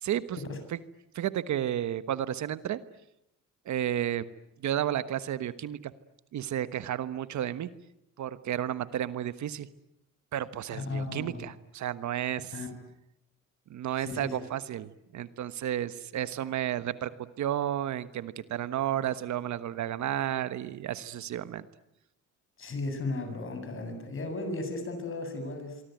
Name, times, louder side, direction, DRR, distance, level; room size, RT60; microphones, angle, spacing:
voice 1, 0.0-0.4 1.1-2.8 3.6-4.2 4.6-5.9 6.3-7.7 8.2-9.7 10.3-12.5 13.7-17.1 17.4-21.7, right 11 dB, 70° right, 14 dB, 1.3 m, -32 dB
voice 2, 10.7-11.5 12.5-12.7 14.0-14.4 22.6-25.8, left 2 dB, 45° left, 7 dB, 7.9 m, -35 dB
26.0 x 24.0 x 9.3 m, 0.84 s
cardioid pair, 90°, 30 cm